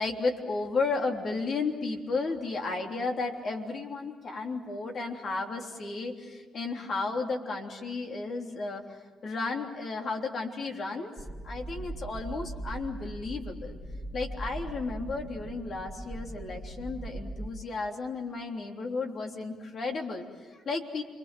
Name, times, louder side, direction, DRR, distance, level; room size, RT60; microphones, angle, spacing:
voice 1, 0.0-11.1 11.4-13.7 14.1-21.0, left 3 dB, 55° left, 2 dB, 3.4 m, -33 dB
sound 1, 11.2-17.5, right 2 dB, 20° right, 2.0 m, -40 dB
28.5 x 23.5 x 7.7 m, 1.4 s
cardioid pair, 90°, 0 cm